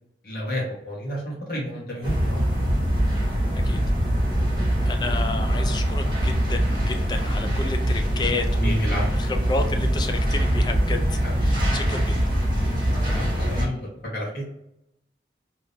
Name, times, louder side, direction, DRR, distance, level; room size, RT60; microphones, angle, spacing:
voice 1, 0.2-2.7 8.5-9.0 11.2-11.5 13.1-13.9 14.1-14.5, equal, 55° left, -5 dB, 1.2 m, -30 dB
sound 1, 2.0-13.7, equal, 25° right, 1.1 m, -23 dB
voice 2, 4.8-12.1, left 3 dB, 25° left, 5 dB, 0.3 m, -31 dB
3.7 x 2.7 x 2.6 m, 0.81 s
head